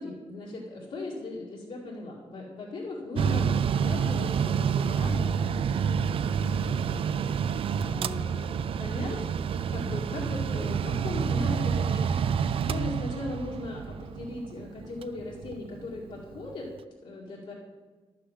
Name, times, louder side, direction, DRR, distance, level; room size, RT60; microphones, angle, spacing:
voice 1, 0.0-5.2 6.5-7.1 7.5-9.2 9.7-12.3 12.7-16.7 17.0-17.5, left 2 dB, 65° left, -7 dB, 2.3 m, -38 dB
Mechanical fan, 3.1-16.5, right 7 dB, 55° right, 0.4 m, -28 dB
11.5 x 6.6 x 7.4 m, 1.3 s
wide cardioid pair, 175°, 11 cm